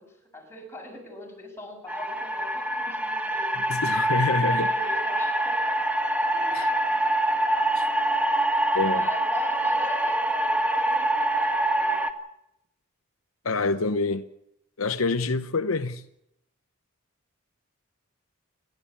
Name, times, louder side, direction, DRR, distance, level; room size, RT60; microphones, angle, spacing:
voice 1, 0.0-3.8 4.5-5.6 6.2-6.7 8.9-12.0, left 1 dB, 10° left, 6.7 m, -41 dB
sound 1, 1.9-12.1, right 1 dB, 5° right, 1.7 m, -25 dB
voice 2, 3.7-4.7 6.5-6.7 7.7-7.9 8.7-9.1 13.4-14.3 14.8-16.0, left 3 dB, 70° left, 0.9 m, -26 dB
29.0 x 12.5 x 8.5 m
head